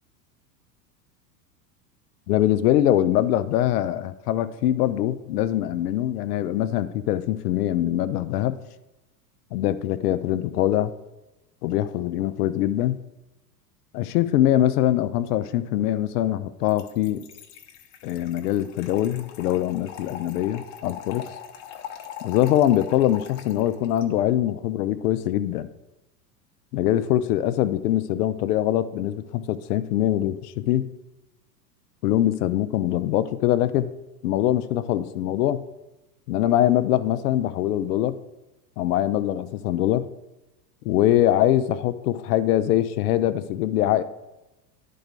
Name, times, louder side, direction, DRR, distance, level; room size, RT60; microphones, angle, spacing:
voice 1, 2.3-8.6 9.5-10.9 11.6-13.0 13.9-17.2 18.0-21.3 22.2-25.7 26.7-30.9 32.0-33.9 34.2-35.7 36.3-38.2 38.8-40.1 40.8-44.0, left 12 dB, 70° left, 13 dB, 0.6 m, -23 dB
Trickle dribble / Fill (with liquid), 16.7-24.0, left 9 dB, 50° left, 1.0 m, -41 dB
10.5 x 4.2 x 3.4 m, 0.99 s
hypercardioid pair, 95°, 49 cm